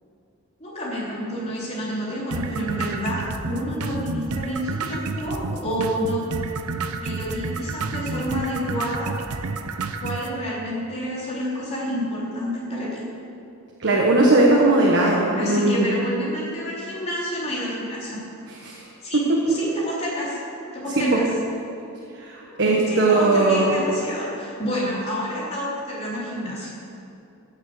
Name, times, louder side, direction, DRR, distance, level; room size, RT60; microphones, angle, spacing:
voice 1, 0.6-6.3 7.0-9.1 10.0-13.0 15.0-18.2 19.0-19.2 19.5-20.4 20.7-21.3 22.4-22.6 22.9-26.7, equal, 30° left, -6 dB, 3.5 m, -29 dB
sound 1, 2.3-10.3, right 4 dB, 85° right, 0.7 m, -30 dB
voice 2, 13.8-15.9 18.6-18.7 19.1-19.2 21.0-21.2 22.2-23.7, right 2 dB, 55° right, -3 dB, 1.5 m, -18 dB
14.5 x 7.3 x 6.8 m, 2.7 s
head